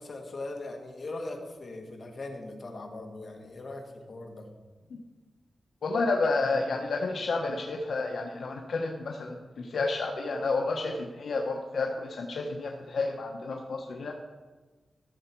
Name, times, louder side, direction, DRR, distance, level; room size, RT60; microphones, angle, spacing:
voice 1, 0.0-4.4, left 2 dB, 45° left, 2 dB, 1.8 m, -40 dB
voice 2, 5.8-14.1, left 3 dB, 75° left, 2 dB, 0.9 m, -30 dB
14.0 x 6.9 x 4.5 m, 1.3 s
wide cardioid pair, 110°, 0 cm